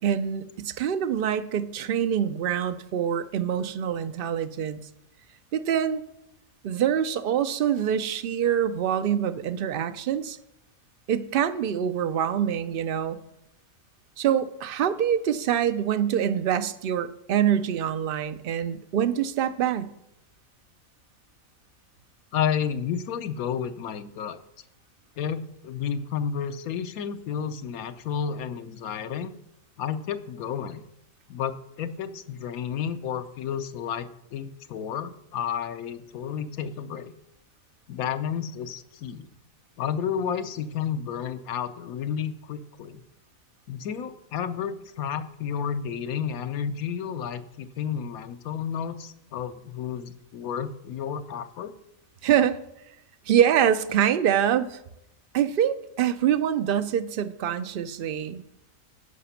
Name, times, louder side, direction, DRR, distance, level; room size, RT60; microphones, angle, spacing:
voice 1, 0.0-4.8 5.5-6.0 6.6-10.4 11.1-13.2 14.2-19.9 52.2-52.6 53.3-54.8 55.3-58.4, right 9 dB, 60° right, 10 dB, 0.6 m, -25 dB
voice 2, 22.3-24.4 25.2-29.3 29.8-30.8 31.3-37.1 37.9-39.3 39.8-43.0 43.7-51.7, left 8 dB, 85° left, 10 dB, 1.2 m, -31 dB
13.5 x 5.0 x 5.7 m, 0.83 s
omnidirectional pair, 1.5 m